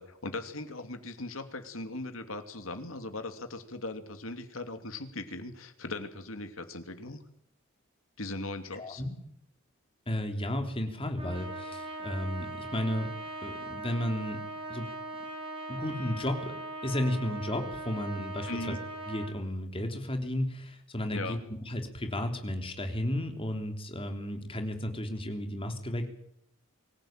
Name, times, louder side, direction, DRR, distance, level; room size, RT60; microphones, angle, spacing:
voice 1, 0.0-7.2 8.2-9.0 18.5-18.8 21.1-21.4, left 2 dB, 85° left, 8 dB, 2.9 m, -39 dB
voice 2, 8.8-9.1 10.1-13.2 13.4-14.4 14.7-14.9 15.7-18.8 19.1-26.1, left 1 dB, 25° left, 6 dB, 3.3 m, -33 dB
Trumpet, 11.2-19.3, right 2 dB, 30° right, 6.8 m, -40 dB
24.5 x 16.0 x 9.1 m, 0.72 s
head